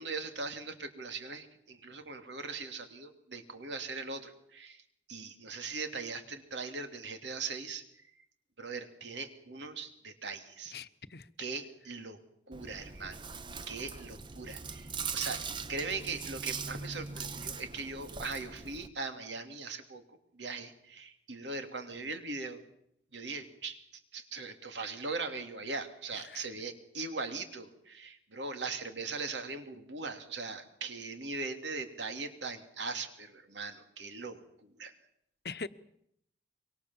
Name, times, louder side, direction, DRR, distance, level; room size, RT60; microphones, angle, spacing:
voice 1, 0.0-4.8 5.1-7.8 8.2-8.3 8.6-10.7 11.4-12.2 12.5-13.2 13.7-22.6 23.1-34.9, right 4 dB, 90° right, 3.0 m, -40 dB
voice 2, 10.7-11.3 26.3-26.4 35.4-35.7, left 4 dB, 60° left, 1.0 m, -41 dB
Chewing mastication, 12.5-18.9, right 5 dB, 25° right, 0.9 m, -41 dB
25.0 x 24.0 x 7.3 m
head